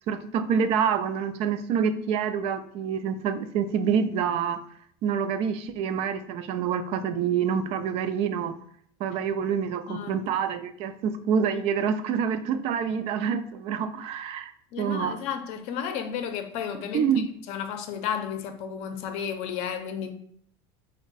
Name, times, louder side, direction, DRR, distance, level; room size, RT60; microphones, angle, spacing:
voice 1, 0.0-4.6 5.0-8.6 9.0-14.5 14.8-15.2 16.9-17.3, right 7 dB, 55° right, 0.4 m, -27 dB
voice 2, 9.9-10.2 14.7-17.1 17.5-20.1, left 8 dB, 60° left, 0.5 m, -32 dB
3.4 x 2.1 x 4.0 m
supercardioid pair, 125°, 13 cm